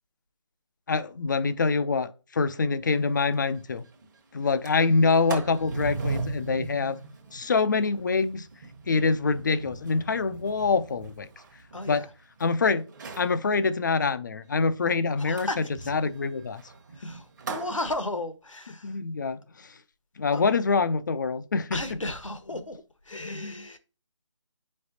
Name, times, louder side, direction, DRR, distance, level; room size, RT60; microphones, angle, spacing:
voice 1, 0.9-3.8 4.3-7.0 7.3-8.5 8.9-11.3 11.9-12.0 12.4-12.8 13.2-16.6 17.0-17.1 18.8-19.7 20.2-21.8 23.2-23.5, left 4 dB, 40° left, 0.5 m, -25 dB
Sliding door, 2.9-3.0 3.3-3.4 3.8-4.1 4.4-12.4 12.9-13.4 15.4-17.8, right 4 dB, 35° right, 1.1 m, -39 dB
voice 2, 11.7-12.1 15.2-15.9 16.9-19.0 20.3-20.4 21.7-23.8, left 2 dB, 85° left, 1.2 m, -35 dB
9.1 x 5.2 x 2.7 m
figure-of-eight pair, 155°, 16 cm